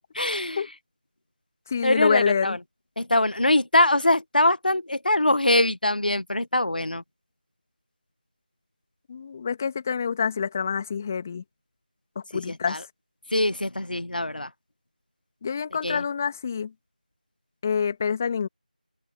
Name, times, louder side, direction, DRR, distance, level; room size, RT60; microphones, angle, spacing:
voice 1, 0.1-0.6 1.8-2.6 3.0-7.0 12.5-12.8 13.3-14.5 15.8-16.0, left 1 dB, 75° left, 1.2 m, -23 dB
voice 2, 1.7-2.6 9.1-11.4 12.2-12.9 15.4-16.7 17.6-18.5, left 6 dB, 20° left, 2.4 m, -27 dB
figure-of-eight pair, 170°, 5 cm